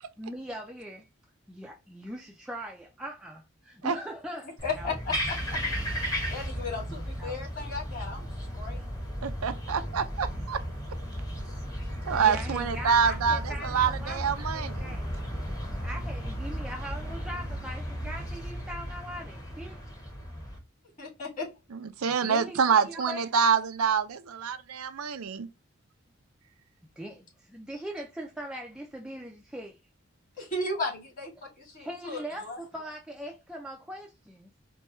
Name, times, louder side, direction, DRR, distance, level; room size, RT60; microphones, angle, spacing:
voice 1, 0.2-1.1 1.5-4.9 6.9-7.4 12.1-14.2 14.5-15.2 15.8-19.8 22.1-23.3 27.0-29.8 31.8-34.5, equal, 5° right, 0.4 m, -41 dB
voice 2, 4.4-5.4 5.8-8.3 8.5-8.8 21.0-21.5 30.4-32.6, left 3 dB, 40° left, 2.3 m, -35 dB
sound 1, 4.6-20.6, equal, 15° left, 1.0 m, -35 dB
voice 3, 9.2-10.6 12.0-15.0 21.7-25.5, right 6 dB, 90° right, 0.5 m, -26 dB
4.4 x 2.3 x 3.0 m
head